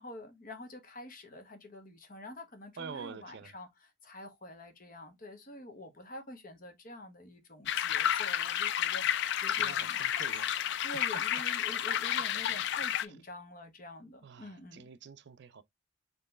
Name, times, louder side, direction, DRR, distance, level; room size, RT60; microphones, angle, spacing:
voice 1, 0.0-10.0 10.3-14.9, left 1 dB, 45° left, 1.0 m, -48 dB
voice 2, 2.8-3.5 9.0-9.2 9.6-10.7 12.1-12.2 12.5-12.6 14.2-15.6, right 6 dB, 55° right, 0.4 m, -47 dB
sound 1, 7.7-13.1, left 10 dB, 60° left, 0.3 m, -31 dB
4.5 x 3.1 x 3.1 m
head